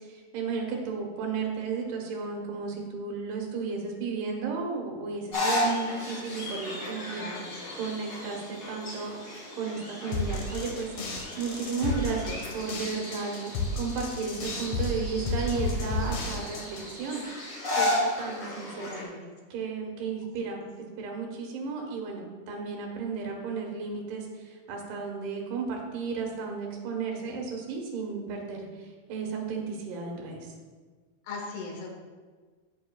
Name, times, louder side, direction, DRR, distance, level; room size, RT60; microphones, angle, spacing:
voice 1, 0.0-7.2 7.7-17.2 17.8-19.0 19.5-30.5, right 5 dB, 85° right, 1 dB, 3.4 m, -34 dB
sound 1, 5.3-19.0, left 1 dB, 30° left, 2.3 m, -34 dB
voice 2, 7.2-7.8 18.8-19.2 31.2-31.9, left 4 dB, 85° left, 1 dB, 3.4 m, -40 dB
sound 2, 10.1-16.9, left 3 dB, 60° left, 1.8 m, -32 dB
15.5 x 6.3 x 2.3 m, 1.5 s
omnidirectional pair, 4.5 m